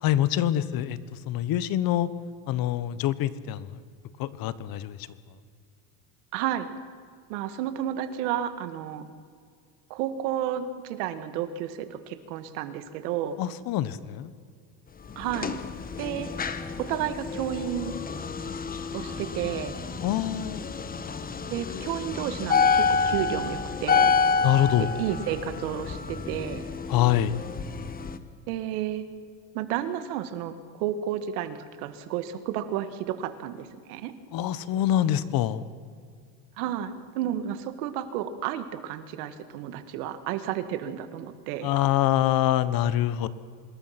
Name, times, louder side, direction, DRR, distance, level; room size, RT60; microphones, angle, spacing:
voice 1, 0.0-2.1 2.5-3.8 4.2-5.1 13.4-14.3 20.0-20.6 24.4-24.9 26.9-27.4 34.3-35.6 41.6-43.3, left 12 dB, 50° left, 16 dB, 1.2 m, -25 dB
voice 2, 6.3-6.7 7.3-9.0 9.9-13.4 15.2-15.5 16.0-16.3 16.8-17.9 18.9-19.7 21.5-24.2 24.8-26.6 28.5-29.0 29.5-34.1 36.6-41.7, right 10 dB, 80° right, 10 dB, 2.0 m, -31 dB
sound 1, 15.1-28.2, left 5 dB, 20° left, 1.2 m, -28 dB
26.0 x 20.5 x 6.0 m, 2.1 s
cardioid pair, 130°, 44 cm